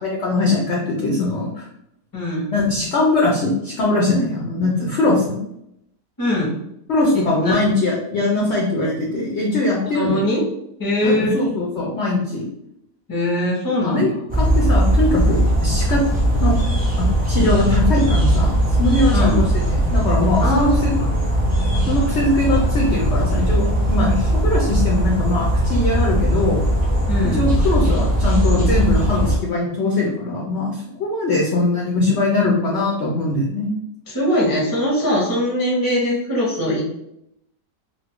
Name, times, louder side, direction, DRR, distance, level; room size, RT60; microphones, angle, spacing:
voice 1, 0.0-1.7 2.5-5.4 6.9-10.2 11.0-12.5 13.8-14.1 14.4-16.0 16.4-16.6 17.0-19.3 19.7-20.9 21.9-26.6 27.2-33.7, left 2 dB, 65° left, -2 dB, 0.7 m, -21 dB
voice 2, 2.1-2.5 6.2-6.5 7.1-7.6 9.8-10.4 10.8-11.4 13.1-14.2 19.1-19.4 20.4-21.1 27.1-27.4 34.1-36.8, left 1 dB, 15° left, -3 dB, 0.7 m, -21 dB
sound 1, 14.3-29.4, equal, 10° right, 0.4 m, -19 dB
2.6 x 2.6 x 3.5 m, 0.77 s
omnidirectional pair, 1.8 m